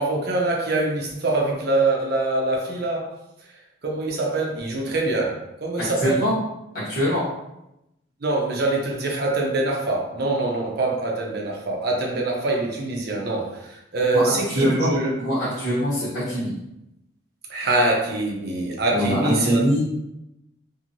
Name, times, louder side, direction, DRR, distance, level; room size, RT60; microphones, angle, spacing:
voice 1, 0.0-3.1 3.8-6.2 8.2-15.1 17.5-19.6, right 2 dB, 50° right, -1 dB, 0.6 m, -24 dB
voice 2, 5.8-6.3 6.7-7.2 14.1-14.9 15.2-16.5 18.9-19.8, equal, 45° left, -12 dB, 1.2 m, -23 dB
3.0 x 2.7 x 2.6 m, 0.87 s
head